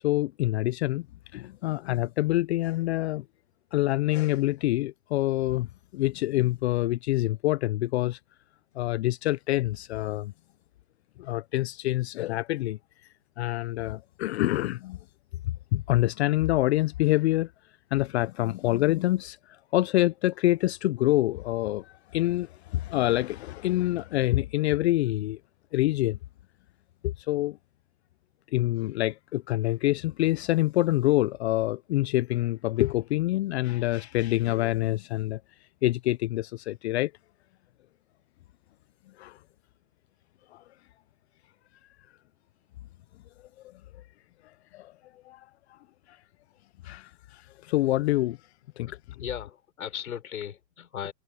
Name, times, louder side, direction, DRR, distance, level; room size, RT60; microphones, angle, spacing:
voice 1, 0.0-1.1 1.3-3.2 3.7-8.2 8.8-10.3 11.2-12.8 13.4-15.0 15.7-17.5 17.9-25.4 25.7-26.2 27.0-27.6 28.5-35.4 35.8-37.1 39.2-39.4 40.5-40.6 44.7-44.9 45.2-45.8 46.8-48.4 48.8-48.9, left 16 dB, 50° left, 0.8 m, -26 dB
voice 2, 48.9-51.1, left 9 dB, 80° left, 4.6 m, -37 dB
hypercardioid pair, 140°, 42 cm